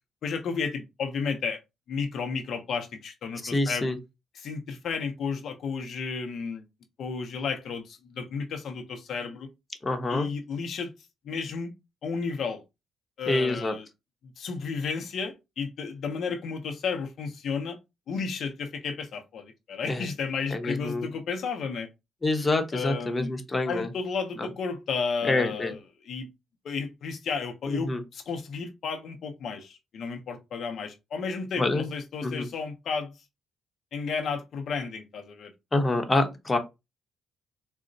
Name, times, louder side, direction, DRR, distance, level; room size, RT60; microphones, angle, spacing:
voice 1, 0.2-1.6 1.9-4.0 4.3-6.6 7.0-9.5 10.1-10.9 11.3-11.7 12.0-12.6 13.2-13.8 14.4-17.8 18.1-21.9 22.7-23.3 23.7-25.8 26.1-26.3 26.6-33.1 33.9-35.5, left 5 dB, 65° left, 0.5 m, -32 dB
voice 2, 3.4-4.0 9.8-10.3 13.3-13.7 19.9-20.1 20.5-21.1 22.2-23.9 24.4-24.5 25.2-25.7 27.7-28.0 31.6-31.9 32.2-32.5 35.7-36.6, left 2 dB, 20° left, 0.7 m, -26 dB
3.8 x 2.0 x 2.6 m
cardioid pair, 90°, 0 cm